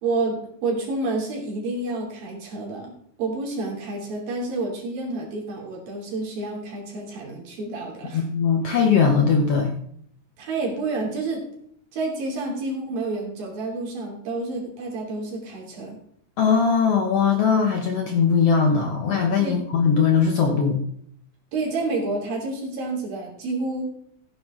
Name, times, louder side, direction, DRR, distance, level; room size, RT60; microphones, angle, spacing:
voice 1, 0.0-2.9 3.2-8.2 10.4-11.4 11.9-16.0 19.4-19.6 21.5-23.9, right 3 dB, 85° right, -1 dB, 4.7 m, -29 dB
voice 2, 8.1-9.7 16.4-20.8, left 6 dB, 65° left, 3 dB, 1.5 m, -20 dB
15.0 x 9.6 x 3.7 m, 0.67 s
omnidirectional pair, 4.0 m